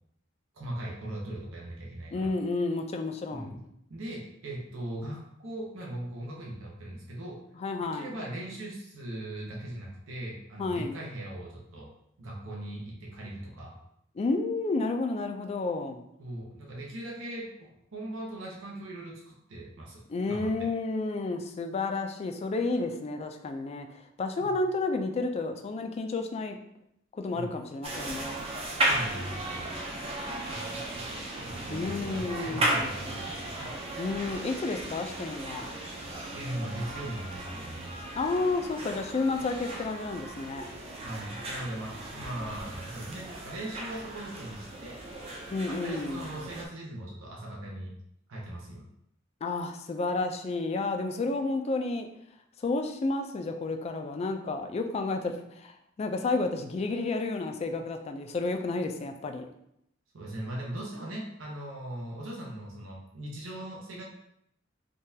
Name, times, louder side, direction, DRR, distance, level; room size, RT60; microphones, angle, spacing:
voice 1, 0.5-2.3 3.3-3.6 3.9-7.4 7.8-13.8 16.2-20.7 24.4-24.5 27.3-27.5 28.8-29.9 30.5-33.9 36.1-37.9 41.0-45.0 45.7-48.0 48.3-48.8 60.1-64.0, right 1 dB, 80° right, -2 dB, 0.7 m, -39 dB
voice 2, 2.1-3.6 7.6-8.1 10.6-11.0 14.2-16.0 20.1-26.6 27.1-28.4 31.7-32.9 34.0-35.8 38.2-40.7 45.5-46.3 49.4-52.1 52.6-59.5, left 3 dB, 30° left, 5 dB, 0.3 m, -31 dB
sound 1, 27.8-46.7, right 1 dB, 30° right, 0.5 m, -36 dB
3.7 x 2.3 x 2.7 m, 0.76 s
head